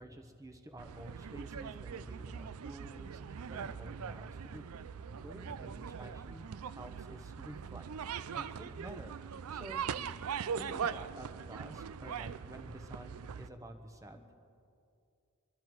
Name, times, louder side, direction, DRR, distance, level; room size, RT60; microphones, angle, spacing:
voice 1, 0.0-4.6 5.2-6.5 6.7-7.8 8.3-9.8 10.5-14.4, right 1 dB, 15° right, 5 dB, 0.9 m, -50 dB
sound 1, 0.8-13.5, right 7 dB, 75° right, 0.4 m, -41 dB
voice 2, 9.8-10.6 14.1-14.3, left 2 dB, 25° left, 11 dB, 0.6 m, -61 dB
23.0 x 12.5 x 4.7 m, 2.6 s
head